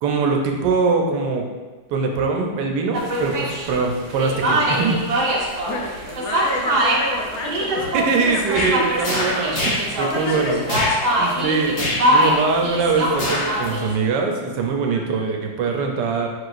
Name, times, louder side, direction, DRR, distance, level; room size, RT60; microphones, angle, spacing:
voice 1, 0.0-1.5 1.9-5.0 7.9-10.6 11.2-11.8 12.1-16.3, right 4 dB, 85° right, 2 dB, 1.3 m, -22 dB
sound 1, 2.9-13.9, right 1 dB, 60° right, 1.0 m, -23 dB
voice 2, 5.6-9.3 10.0-10.6 11.0-11.5 14.9-15.1, left 2 dB, 65° left, 0 dB, 1.0 m, -30 dB
sound 2, 8.5-8.7 9.0-9.9 10.6-11.0 11.8-12.1 13.1-13.6 14.0-14.1, left 1 dB, 50° left, 1.4 m, -24 dB
4.8 x 4.5 x 2.5 m, 1.3 s
omnidirectional pair, 1.8 m